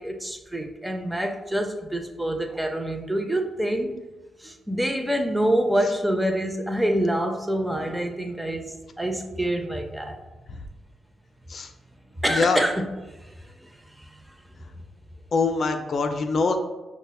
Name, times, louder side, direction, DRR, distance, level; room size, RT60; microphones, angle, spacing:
voice 1, 0.0-4.0 4.4-10.2 12.2-13.7 14.0-14.1, right 1 dB, 10° right, 4 dB, 0.4 m, -26 dB
voice 2, 12.3-12.6 15.3-16.6, left 4 dB, 60° left, 5 dB, 0.3 m, -23 dB
5.1 x 2.1 x 2.2 m, 1.1 s
cardioid pair, 65°, 0 cm